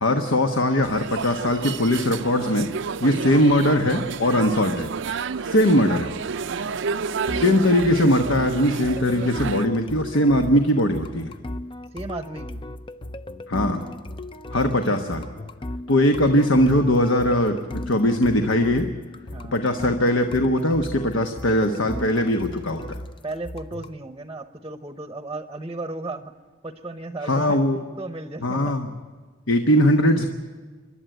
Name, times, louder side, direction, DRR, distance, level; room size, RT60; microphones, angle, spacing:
voice 1, 0.0-2.7 3.0-4.9 5.4-6.1 7.3-11.3 13.5-13.8 14.5-15.3 15.9-18.9 19.5-23.0 27.2-27.8 28.4-28.9 29.5-30.3, left 1 dB, 70° left, 5 dB, 1.2 m, -20 dB
sound 1, 0.8-9.6, right 5 dB, 65° right, 0.5 m, -30 dB
voice 2, 6.6-6.9 11.9-12.6 19.3-19.6 23.2-26.3 26.6-27.6 28.0-28.8, right 2 dB, 20° right, 9 dB, 0.8 m, -35 dB
sound 2, 7.3-24.0, left 1 dB, 25° left, 0.5 m, -36 dB
27.0 x 11.5 x 9.2 m, 1.4 s
head